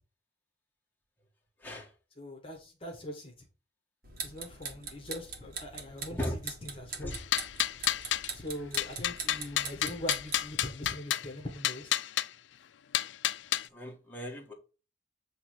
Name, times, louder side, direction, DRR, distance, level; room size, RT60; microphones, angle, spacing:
voice 1, 2.2-3.3 4.2-7.2 8.3-11.9, left 1 dB, 30° left, 1.5 m, -42 dB
sound 1, 4.0-10.5, right 5 dB, 50° right, 1.7 m, -42 dB
sound 2, 7.1-8.3 8.8-11.3 11.6-12.3 12.9-13.7, left 12 dB, 85° left, 0.4 m, -30 dB
voice 2, 13.7-14.5, left 1 dB, 10° left, 1.6 m, -36 dB
8.4 x 3.2 x 6.2 m
head